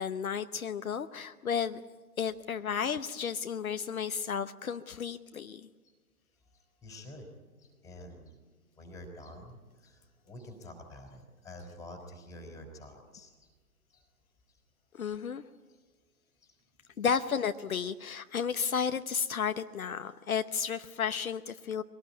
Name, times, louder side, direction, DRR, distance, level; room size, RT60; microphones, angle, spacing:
voice 1, 0.0-1.8 2.2-5.7 14.9-15.4 17.0-21.8, left 7 dB, 65° left, 9 dB, 1.0 m, -33 dB
voice 2, 6.5-7.3 7.6-8.4 8.8-13.5 13.9-14.1 16.4-16.6, left 1 dB, 5° left, 4 dB, 3.6 m, -48 dB
23.0 x 18.5 x 9.6 m, 1.4 s
figure-of-eight pair, 135°, 45 cm